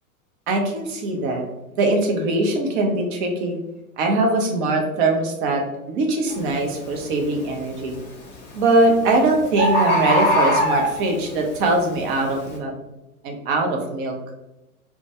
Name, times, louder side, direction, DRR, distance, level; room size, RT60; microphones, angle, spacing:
voice 1, 0.5-1.5 1.8-3.6 4.0-5.6 5.9-7.9 8.5-12.7 13.2-14.2, right 2 dB, 35° right, 2 dB, 0.6 m, -21 dB
Bird, 6.3-6.5 7.1-7.5 8.6-8.7 8.9-9.0 9.2-9.3 9.6-11.3 11.9-12.0, equal, 25° left, 0.8 m, -20 dB
2.2 x 2.2 x 2.7 m, 0.96 s
figure-of-eight pair, 105°, 44 cm